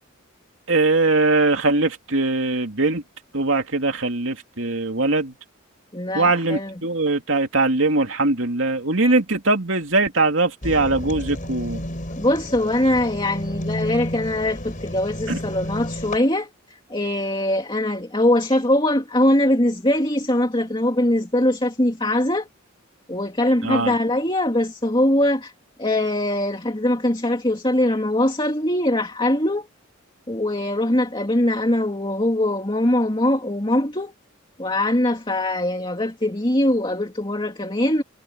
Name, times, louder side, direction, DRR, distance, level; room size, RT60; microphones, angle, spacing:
voice 1, 0.7-3.0 3.3-5.3 6.1-11.8 15.3-15.4 23.6-23.9, right 2 dB, 70° right, 2.9 m, -21 dB
voice 2, 5.9-6.8 12.1-22.5 23.1-25.5 25.8-29.7 30.3-34.1 34.6-38.0, left 1 dB, 25° left, 2.6 m, -22 dB
sound 1, 10.6-16.2, equal, 40° left, 7.3 m, -31 dB
head